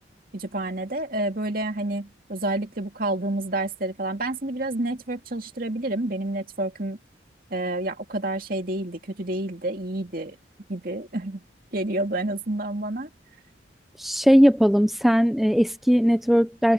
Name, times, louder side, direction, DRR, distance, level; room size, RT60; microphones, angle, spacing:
voice 1, 0.3-7.0 7.5-10.4 10.7-11.4 11.7-13.1, right 1 dB, 50° right, 2.4 m, -29 dB
voice 2, 14.0-16.7, equal, ahead, 0.6 m, -19 dB
open air
head